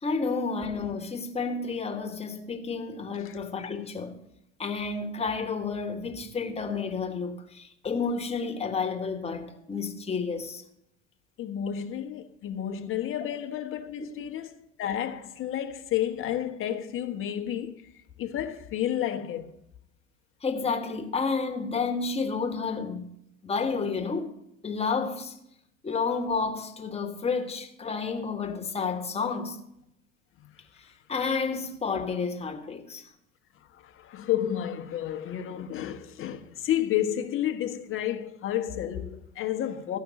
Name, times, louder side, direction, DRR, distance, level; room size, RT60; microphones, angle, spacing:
voice 1, 0.0-4.2 4.6-10.6 14.0-14.1 20.4-23.1 23.4-24.3 24.6-25.4 25.8-29.6 31.1-33.1, left 4 dB, 15° left, 1.5 m, -30 dB
voice 2, 11.4-14.5 14.8-17.9 18.2-19.5 33.7-40.0, left 11 dB, 35° left, 1.2 m, -31 dB
14.0 x 5.8 x 7.6 m
figure-of-eight pair, 75°, 37 cm